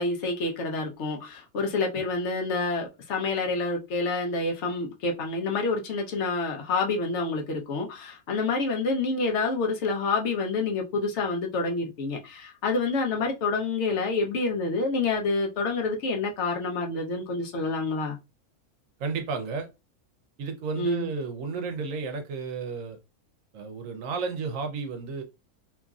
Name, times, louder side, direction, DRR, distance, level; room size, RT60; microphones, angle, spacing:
voice 1, 0.0-18.2 20.8-21.1, left 3 dB, 60° left, 0.9 m, -28 dB
voice 2, 19.0-19.7 20.4-23.0 23.5-25.2, right 4 dB, 70° right, 0.9 m, -32 dB
2.9 x 2.5 x 2.3 m
omnidirectional pair, 1.5 m